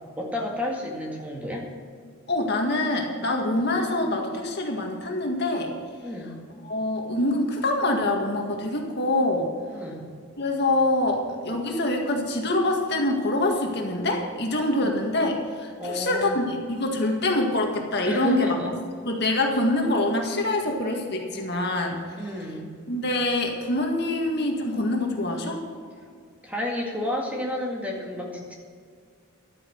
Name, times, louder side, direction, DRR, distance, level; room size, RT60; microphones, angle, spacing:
voice 1, 0.2-1.7 3.5-3.7 6.0-6.4 9.7-10.0 14.7-14.9 15.8-16.5 18.1-18.7 22.1-22.7 26.4-28.5, left 1 dB, 5° right, -1 dB, 2.0 m, -31 dB
voice 2, 2.3-5.7 6.6-9.5 10.4-18.7 19.1-22.2 22.9-25.6, left 2 dB, 50° left, 1 dB, 1.9 m, -25 dB
12.0 x 9.4 x 6.6 m, 2.1 s
head